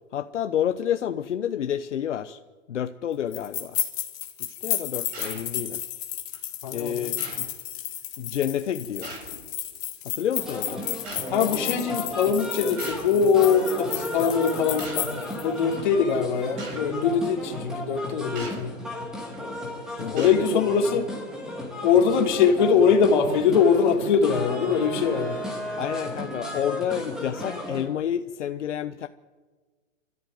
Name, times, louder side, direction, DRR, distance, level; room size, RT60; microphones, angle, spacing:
voice 1, 0.1-2.4 2.7-3.8 4.5-5.8 6.7-7.5 8.2-9.2 10.0-10.8 16.2-16.3 16.8-16.9 20.0-20.6 25.8-29.1, left 9 dB, 65° left, 9 dB, 1.0 m, -29 dB
sound 1, 3.3-15.4, left 13 dB, 20° left, 1.9 m, -33 dB
sound 2, 5.1-5.5 6.3-6.4 7.2-7.5 9.0-9.4 11.0-11.3 12.8-13.1 14.0-14.2 14.8-15.1 15.8-15.9 16.6-16.8 18.4-18.6 19.3-19.6 20.2-20.5, right 2 dB, 20° right, 4.9 m, -40 dB
voice 2, 6.6-7.1 11.3-18.7 20.1-21.0 21.8-25.4, left 6 dB, 35° left, 2 dB, 3.1 m, -22 dB
sound 3, 10.4-27.9, left 1 dB, ahead, 2.4 m, -34 dB
27.0 x 14.0 x 9.4 m, 1.4 s
hypercardioid pair, 175°, 38 cm